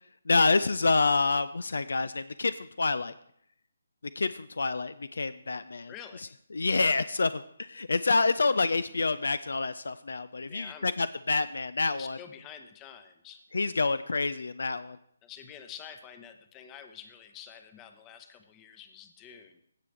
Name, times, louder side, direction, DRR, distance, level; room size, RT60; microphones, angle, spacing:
voice 1, 0.3-3.1 4.2-5.9 6.5-12.2 13.5-15.0, left 3 dB, 60° left, 15 dB, 0.4 m, -27 dB
voice 2, 5.9-6.3 10.5-10.9 11.9-13.4 15.2-19.6, left 8 dB, 15° left, 8 dB, 0.8 m, -48 dB
16.5 x 6.0 x 3.3 m, 0.68 s
figure-of-eight pair, 145°, 0 cm